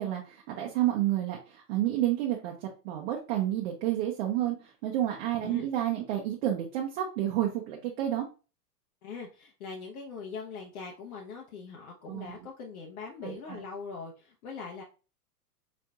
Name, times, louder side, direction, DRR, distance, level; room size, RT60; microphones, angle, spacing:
voice 1, 0.0-8.2 12.1-12.5 13.2-13.6, right 12 dB, 40° right, 0 dB, 0.7 m, -30 dB
voice 2, 9.0-14.8, left 5 dB, 60° left, -1 dB, 0.9 m, -41 dB
4.2 x 3.0 x 2.3 m, 0.33 s
hypercardioid pair, 115°, 48 cm